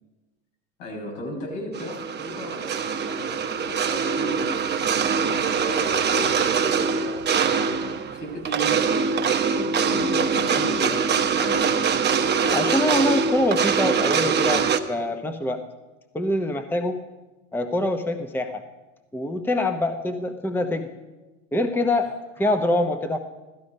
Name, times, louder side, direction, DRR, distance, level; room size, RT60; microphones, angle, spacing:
voice 1, 0.8-11.8, equal, 75° left, -1 dB, 6.3 m, -36 dB
sound 1, 1.7-14.8, right 6 dB, 25° right, 1.1 m, -23 dB
voice 2, 12.5-15.6 16.1-17.0 17.5-18.6 19.1-20.9 21.5-23.2, left 1 dB, 5° left, 7 dB, 0.9 m, -25 dB
16.0 x 14.0 x 5.3 m, 1.1 s
hypercardioid pair, 100°, 40 cm